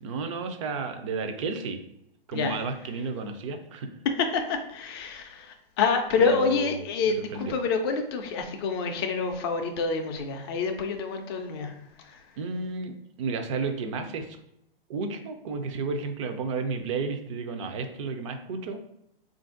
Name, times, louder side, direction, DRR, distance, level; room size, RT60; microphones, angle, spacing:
voice 1, 0.0-1.8 2.3-3.9 6.2-6.7 7.3-7.6 12.4-14.4 14.9-18.8, right 4 dB, 35° right, 6 dB, 0.4 m, -32 dB
voice 2, 2.3-2.6 4.0-12.3, left 4 dB, 25° left, 5 dB, 0.4 m, -27 dB
3.7 x 2.6 x 3.7 m, 0.81 s
hypercardioid pair, 135°, 29 cm